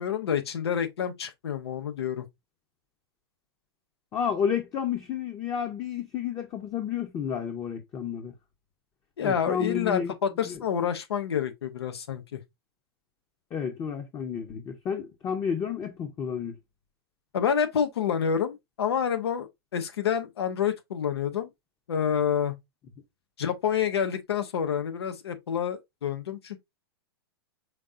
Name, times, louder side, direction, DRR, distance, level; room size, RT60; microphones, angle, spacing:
voice 1, 0.0-2.2 9.2-12.4 17.3-21.5 21.9-22.5 23.4-26.6, left 8 dB, 80° left, 1.0 m, -28 dB
voice 2, 4.1-8.3 9.2-10.1 10.4-10.6 13.5-16.6, left 7 dB, 25° left, 0.9 m, -31 dB
5.2 x 3.7 x 2.5 m
hypercardioid pair, 115°, 13 cm